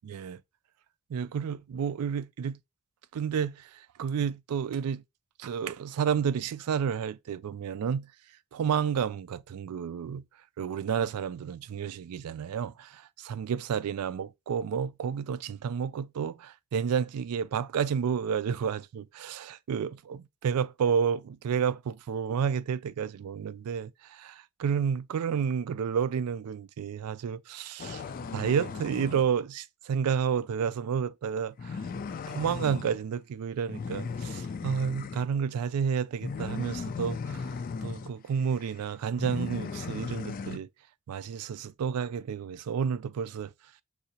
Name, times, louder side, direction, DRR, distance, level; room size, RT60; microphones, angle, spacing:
voice 1, 0.0-0.4 1.1-2.6 3.1-5.0 5.4-8.1 8.5-10.2 10.6-31.8 32.3-40.7 41.1-43.5, right 7 dB, 85° right, 0.4 m, -31 dB
sound 1, 27.8-29.3 31.6-33.0 33.7-35.3 36.2-38.1 38.5-38.8 39.2-40.6, left 5 dB, 40° left, 0.3 m, -37 dB
6.6 x 2.7 x 2.8 m
head